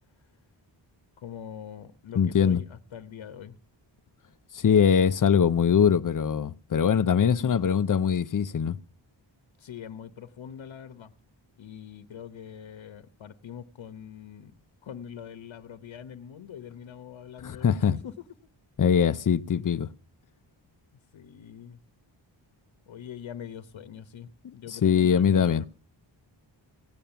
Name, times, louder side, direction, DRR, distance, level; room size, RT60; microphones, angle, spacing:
voice 1, 1.2-3.6 7.4-7.7 9.6-11.1 11.6-18.2 21.1-21.8 22.9-25.7, left 8 dB, 75° left, 1.0 m, -43 dB
voice 2, 2.2-2.6 4.5-8.8 17.4-17.9 18.8-19.9 24.7-25.7, left 7 dB, 45° left, 0.6 m, -22 dB
17.0 x 8.9 x 6.9 m
wide cardioid pair, 170°, 46 cm